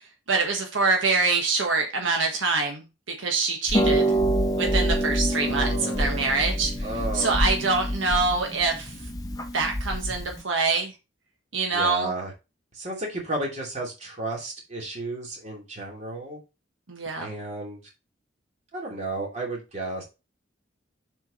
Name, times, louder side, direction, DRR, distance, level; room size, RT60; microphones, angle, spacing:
voice 1, 0.3-2.8 3.2-4.1 4.6-6.7 7.1-8.9 9.5-10.9 11.5-12.1 16.9-17.3, right 3 dB, 80° right, 2 dB, 1.4 m, -25 dB
Harp, 3.7-10.4, right 1 dB, 20° left, 0.8 m, -26 dB
voice 2, 5.3-6.4 6.8-7.3 11.7-12.3 12.7-16.4 17.2-17.8 18.7-20.0, right 2 dB, 35° right, -1 dB, 2.8 m, -33 dB
7.1 x 4.8 x 4.3 m, 0.27 s
head